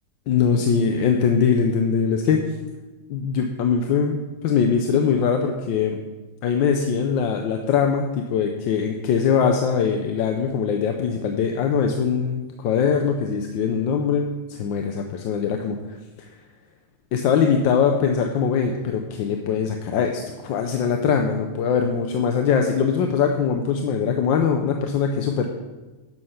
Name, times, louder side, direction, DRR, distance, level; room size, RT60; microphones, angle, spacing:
voice 1, 0.3-2.4 3.1-6.0 6.4-16.0 17.1-25.5, left 6 dB, 70° left, 4 dB, 1.4 m, -22 dB
10.0 x 7.9 x 5.8 m, 1.2 s
omnidirectional pair, 2.3 m